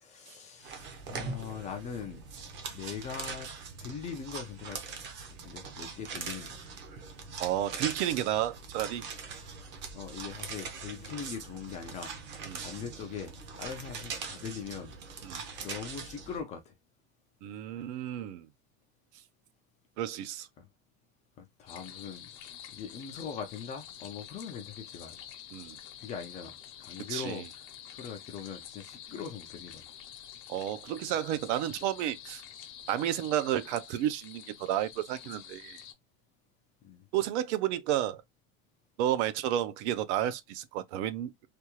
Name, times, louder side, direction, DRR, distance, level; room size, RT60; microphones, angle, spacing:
voice 1, 0.0-2.2 2.7-3.5 3.8-5.0 5.4-6.6 9.7-14.9 15.3-16.8 20.6-20.7 21.4-22.3 22.7-25.2 26.0-27.4 27.9-29.8 36.8-37.1, left 7 dB, 20° left, 0.3 m, -41 dB
sound 1, 0.6-16.4, right 5 dB, 30° right, 0.6 m, -42 dB
voice 2, 7.4-9.0 12.5-12.6 15.2-15.4 17.4-18.5 20.0-20.5 25.5-25.8 27.0-27.4 30.5-32.4 32.9-35.8 37.1-38.2 39.0-41.3, right 12 dB, 70° right, 0.6 m, -31 dB
sound 2, 21.7-35.9, left 10 dB, 55° left, 0.8 m, -48 dB
3.4 x 2.3 x 2.9 m
cardioid pair, 170°, 36 cm